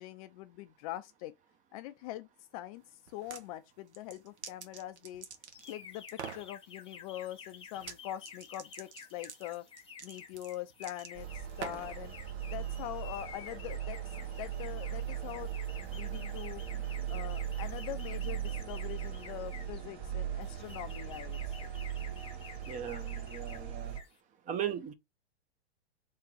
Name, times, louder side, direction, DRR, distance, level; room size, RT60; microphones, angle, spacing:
voice 1, 0.0-1.3 1.7-2.3 2.5-5.3 5.7-9.7 10.0-12.1 12.5-14.0 14.3-16.6 17.1-21.7, left 14 dB, 35° left, 0.4 m, -43 dB
sound 1, 3.1-3.5 3.9-5.8 6.1-6.5 7.8-8.0 8.2-12.0, right 7 dB, 90° right, 1.1 m, -45 dB
sound 2, 5.5-19.8 20.4-23.6 23.9-24.2, left 7 dB, 15° left, 0.8 m, -51 dB
sound 3, 11.1-24.0, right 10 dB, 45° right, 1.6 m, -39 dB
voice 2, 22.7-23.9 24.5-24.9, right 9 dB, 25° right, 0.6 m, -37 dB
3.6 x 2.9 x 4.5 m
hypercardioid pair, 125°, 33 cm